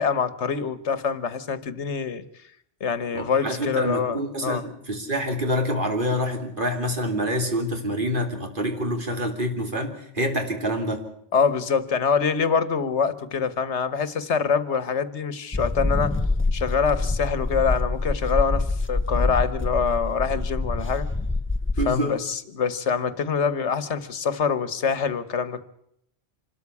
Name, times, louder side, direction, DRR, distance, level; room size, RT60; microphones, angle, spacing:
voice 1, 0.0-2.2 2.8-4.6 11.3-16.2 16.5-21.1 21.9-25.6, left 6 dB, 85° left, 15 dB, 1.5 m, -25 dB
voice 2, 3.1-11.1 21.8-22.2, equal, 50° right, 4 dB, 3.3 m, -27 dB
sound 1, 15.5-22.0, left 2 dB, 10° left, 0.8 m, -25 dB
26.0 x 13.5 x 8.4 m, 0.73 s
omnidirectional pair, 1.1 m